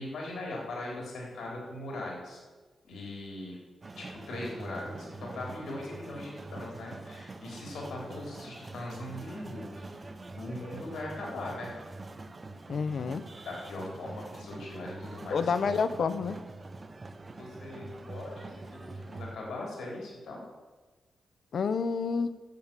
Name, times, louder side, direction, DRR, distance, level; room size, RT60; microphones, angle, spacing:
voice 1, 0.0-2.4 2.8-3.6 4.0-9.8 10.4-11.7 13.4-15.4 17.4-20.4, left 2 dB, 75° left, -2 dB, 3.6 m, -40 dB
sound 1, 3.8-19.4, right 2 dB, 25° right, 0.6 m, -44 dB
voice 2, 12.7-13.2 15.3-16.4 21.5-22.4, left 5 dB, 55° left, 12 dB, 0.7 m, -29 dB
10.5 x 8.2 x 7.5 m, 1.3 s
wide cardioid pair, 150°, 0 cm